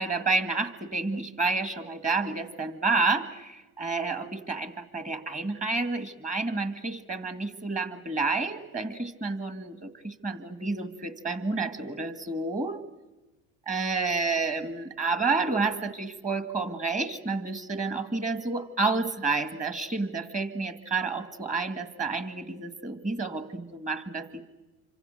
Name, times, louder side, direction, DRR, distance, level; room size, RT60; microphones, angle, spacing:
voice 1, 0.0-12.8 13.7-24.4, right 3 dB, 20° right, 10 dB, 2.1 m, -30 dB
28.0 x 25.0 x 6.6 m, 1.1 s
supercardioid pair, 90°, 39 cm